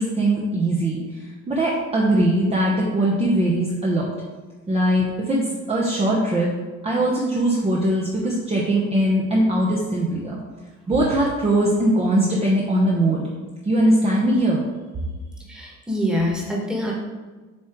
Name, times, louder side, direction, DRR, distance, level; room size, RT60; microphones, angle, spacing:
voice 1, 0.0-4.1 4.7-5.4 5.7-6.5 6.8-10.4 10.9-13.3 13.6-14.6, right 1 dB, 20° right, -4 dB, 0.9 m, -21 dB
voice 2, 15.5-16.9, equal, 5° right, -3 dB, 1.4 m, -25 dB
7.4 x 3.1 x 4.5 m, 1.3 s
cardioid pair, 125°, 30 cm